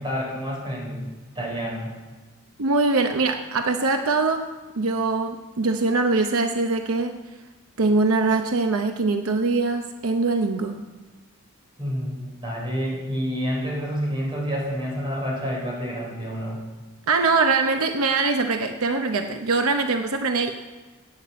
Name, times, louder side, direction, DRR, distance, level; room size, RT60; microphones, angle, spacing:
voice 1, 0.0-1.9 11.8-16.6, equal, 20° right, -3 dB, 4.5 m, -29 dB
voice 2, 2.6-4.4 4.8-7.2 7.8-10.8 17.1-20.5, right 3 dB, 75° right, 5 dB, 0.8 m, -22 dB
11.0 x 8.7 x 8.5 m, 1.3 s
head